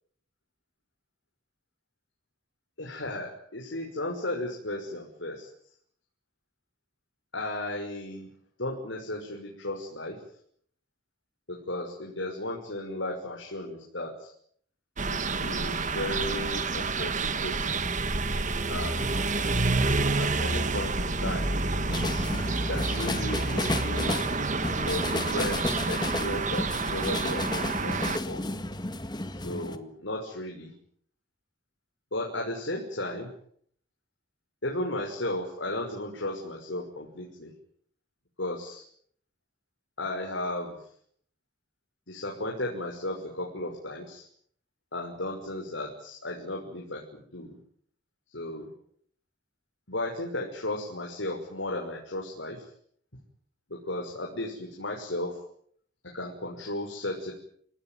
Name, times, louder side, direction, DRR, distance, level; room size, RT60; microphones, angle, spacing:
voice 1, 2.8-5.5 7.3-8.3 8.6-10.2 11.5-14.3 15.1-17.8 18.7-19.2 20.2-22.3 22.7-24.2 24.8-28.0 28.3-28.4 29.3-30.7 32.1-33.3 34.6-37.5 38.4-38.8 40.0-40.8 42.1-44.3 44.9-47.0 47.3-47.6 48.3-48.7 49.9-52.7 53.7-55.4 56.1-57.3, left 1 dB, 85° left, 0 dB, 6.1 m, -35 dB
sound 1, 15.0-28.2, right 3 dB, 40° right, 1.8 m, -28 dB
sound 2, 21.9-29.8, left 2 dB, 25° left, 1.8 m, -33 dB
29.5 x 18.0 x 9.3 m, 0.64 s
head